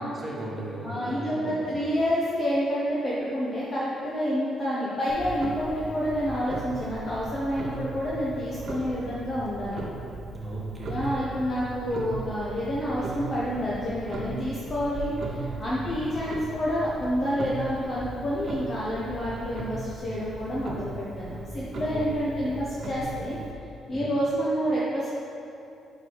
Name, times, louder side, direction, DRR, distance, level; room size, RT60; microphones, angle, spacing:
voice 1, 0.0-2.0 10.3-11.2 15.8-16.0 21.7-22.5 23.9-24.1, right 1 dB, 20° right, -4 dB, 1.3 m, -37 dB
voice 2, 0.8-9.9 10.8-23.4 23.9-25.1, equal, 40° left, -7 dB, 1.0 m, -28 dB
Clock, 5.1-23.5, right 3 dB, 50° right, 0.8 m, -37 dB
4.8 x 4.8 x 4.7 m, 2.7 s
cardioid pair, 90°, 0 cm